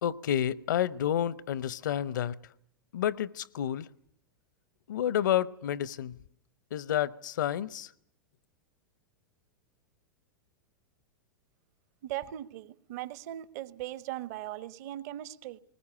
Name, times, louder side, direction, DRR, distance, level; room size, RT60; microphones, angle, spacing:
voice 1, 0.0-2.4 2.9-3.9 4.9-6.2 6.7-7.9, left 10 dB, 65° left, 1.0 m, -30 dB
voice 2, 12.0-15.6, right 14 dB, 50° right, 1.2 m, -39 dB
20.5 x 20.0 x 9.9 m
figure-of-eight pair, 95°, 11 cm